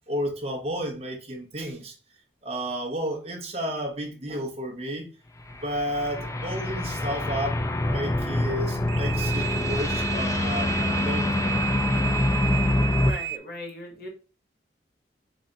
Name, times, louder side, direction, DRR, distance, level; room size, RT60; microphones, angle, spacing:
voice 1, 0.1-1.9 2.4-5.1 5.6-12.2, equal, 35° right, 0.9 m, -32 dB
sound 1, 5.4-13.1, left 1 dB, 15° left, 0.3 m, -26 dB
sound 2, 8.8-13.4, right 11 dB, 80° right, 0.3 m, -32 dB
voice 2, 12.9-14.1, left 1 dB, 55° left, 1.3 m, -38 dB
4.1 x 3.2 x 3.8 m
head